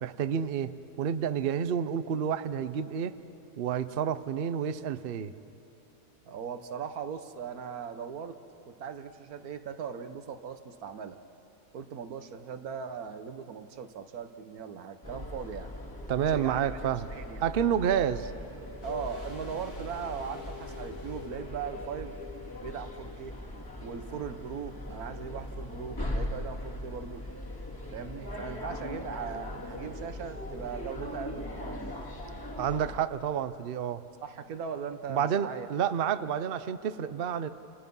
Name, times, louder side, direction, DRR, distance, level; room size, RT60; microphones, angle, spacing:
voice 1, 0.0-3.1 3.6-5.3 16.1-17.1 17.4-18.3 32.6-34.0 35.1-37.5, right 8 dB, 50° right, 13 dB, 0.8 m, -29 dB
voice 2, 6.2-8.4 8.7-11.2 11.7-15.7 16.3-16.7 17.1-17.5 18.8-22.2 22.6-23.3 23.8-27.2 27.9-31.9 34.2-35.7, right 7 dB, 70° right, 9 dB, 1.6 m, -39 dB
sound 1, 15.0-33.0, left 1 dB, 15° left, 2.1 m, -40 dB
sound 2, 18.8-23.7 23.9-24.0, left 6 dB, 75° left, 2.7 m, -46 dB
29.5 x 29.0 x 5.5 m, 3.0 s
omnidirectional pair, 1.6 m